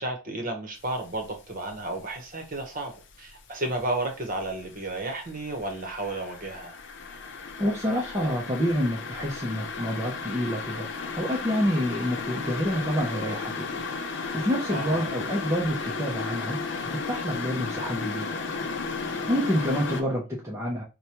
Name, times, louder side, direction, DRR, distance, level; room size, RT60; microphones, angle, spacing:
voice 1, 0.0-6.8 14.7-15.1, right 2 dB, 40° right, 0.9 m, -32 dB
sound 1, 1.0-1.4 1.7-3.3 3.6-20.0, left 4 dB, 55° left, 0.6 m, -34 dB
voice 2, 7.6-10.9 11.1-13.9 14.2-16.6 16.9-18.3 19.0-20.8, equal, 15° right, 0.6 m, -28 dB
4.7 x 2.2 x 2.8 m
head